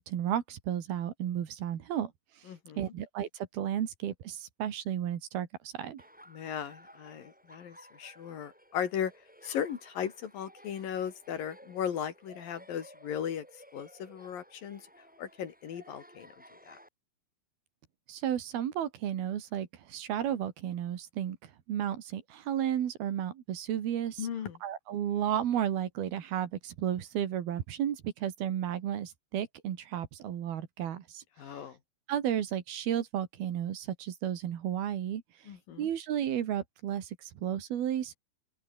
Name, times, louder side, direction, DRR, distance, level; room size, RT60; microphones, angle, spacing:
voice 1, 0.0-2.1 2.8-6.0 18.1-24.3 24.6-31.2 32.1-35.2 35.8-38.2, right 10 dB, 75° right, 3.9 m, -33 dB
voice 2, 2.5-2.8 6.3-9.1 9.4-13.5 13.7-14.8 15.2-16.3 16.7-16.8 24.2-24.6 31.4-31.8 35.5-35.9, left 9 dB, 65° left, 3.9 m, -37 dB
Laughter, 6.0-16.9, equal, ahead, 7.3 m, -56 dB
open air
omnidirectional pair, 4.5 m